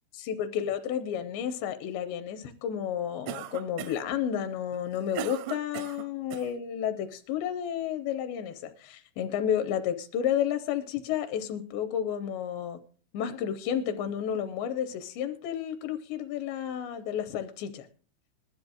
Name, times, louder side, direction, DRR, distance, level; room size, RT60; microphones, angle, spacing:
voice 1, 0.1-12.8 13.1-17.9, left 9 dB, 80° left, 10 dB, 2.8 m, -31 dB
Cough, 3.3-4.1 4.7-6.5, right 12 dB, 85° right, 3.1 m, -38 dB
20.5 x 12.5 x 2.3 m, 0.39 s
omnidirectional pair, 5.4 m